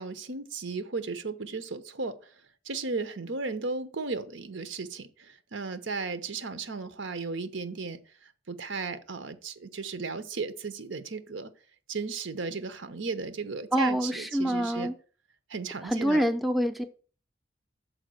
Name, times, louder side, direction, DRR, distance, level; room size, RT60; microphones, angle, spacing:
voice 1, 0.0-2.2 2.6-8.0 8.5-11.5 11.9-14.9 15.5-16.2, right 4 dB, 85° right, 0.9 m, -35 dB
voice 2, 13.7-14.9 15.8-16.9, equal, ahead, 0.5 m, -26 dB
6.5 x 4.8 x 6.4 m
head